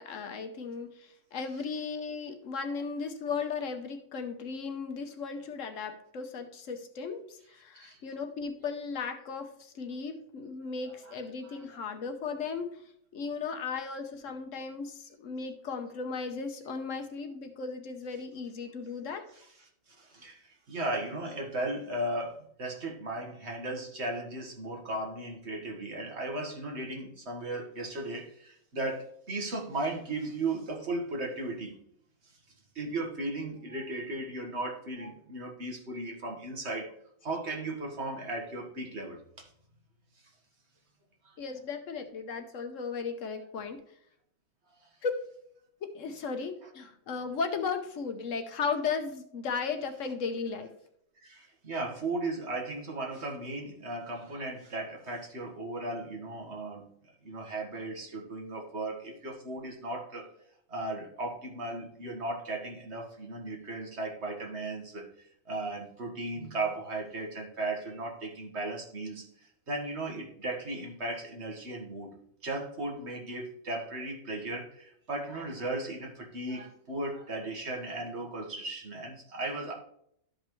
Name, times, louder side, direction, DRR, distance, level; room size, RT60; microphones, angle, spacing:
voice 1, 0.0-19.3 41.4-43.8 45.0-45.1 45.8-50.7, left 5 dB, 65° left, 7 dB, 1.1 m, -36 dB
voice 2, 19.9-31.7 32.2-32.3 32.8-36.9 37.2-39.5 41.2-41.4 44.8-44.9 51.2-56.8 57.2-60.3 60.7-72.1 72.4-79.7, right 2 dB, 50° right, 0 dB, 1.8 m, -36 dB
12.5 x 5.2 x 3.1 m, 0.70 s
omnidirectional pair, 1.5 m